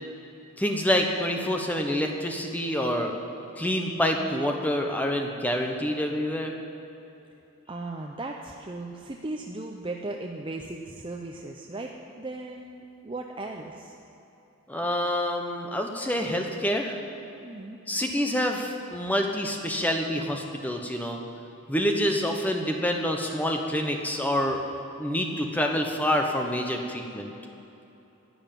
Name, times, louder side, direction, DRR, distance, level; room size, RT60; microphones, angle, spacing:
voice 1, 0.6-3.1 3.6-6.5 14.7-17.0 17.9-21.2 21.7-24.6 25.0-27.3, equal, 10° left, 2 dB, 1.0 m, -27 dB
voice 2, 7.7-11.9 12.2-14.0 17.4-17.8, right 2 dB, 25° right, 1 dB, 0.6 m, -37 dB
12.0 x 8.1 x 9.0 m, 2.9 s
head